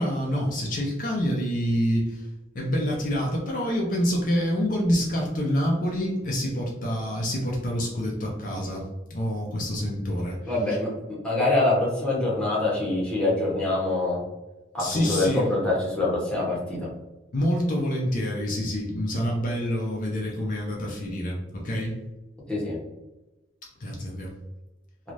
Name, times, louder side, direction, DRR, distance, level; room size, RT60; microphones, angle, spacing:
voice 1, 0.0-2.3 2.5-10.8 14.8-15.5 17.3-22.0 23.8-24.3, equal, 50° left, -2 dB, 0.5 m, -27 dB
voice 2, 10.5-10.9 11.2-14.2 14.7-16.8 22.5-22.8, left 2 dB, 5° left, -6 dB, 0.9 m, -24 dB
3.1 x 2.4 x 2.6 m, 1.1 s
head